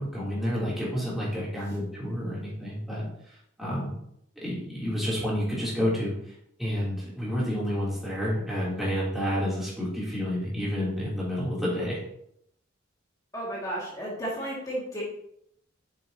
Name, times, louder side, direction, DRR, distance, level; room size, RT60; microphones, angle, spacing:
voice 1, 0.0-3.9 4.4-6.1 6.6-12.0, equal, ahead, -8 dB, 3.2 m, -29 dB
voice 2, 13.3-15.0, right 1 dB, 20° left, -6 dB, 2.2 m, -33 dB
7.2 x 7.1 x 2.9 m, 0.73 s
head